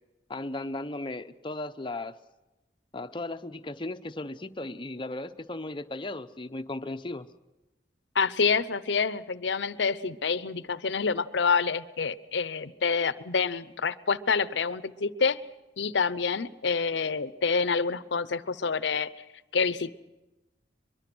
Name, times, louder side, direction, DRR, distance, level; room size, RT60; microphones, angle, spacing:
voice 1, 0.3-2.2 2.9-7.3, left 2 dB, 25° left, 9 dB, 0.7 m, -36 dB
voice 2, 8.1-15.4 15.8-19.1 19.5-19.9, left 5 dB, 70° left, 16 dB, 0.7 m, -27 dB
23.0 x 23.0 x 6.1 m, 1.1 s
head